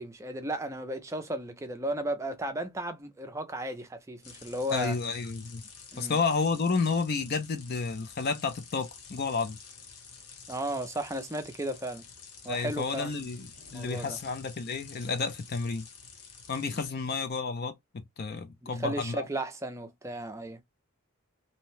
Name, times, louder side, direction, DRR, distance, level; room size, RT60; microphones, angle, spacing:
voice 1, 0.0-5.0 5.9-6.2 10.5-12.1 12.4-13.3 13.7-14.2 18.6-20.6, right 1 dB, 15° right, 0.4 m, -35 dB
sound 1, 4.2-16.9, left 5 dB, 85° left, 0.8 m, -49 dB
voice 2, 4.7-5.6 6.0-9.6 12.5-15.8 16.5-19.3, left 4 dB, 45° left, 0.5 m, -31 dB
2.7 x 2.1 x 2.9 m
head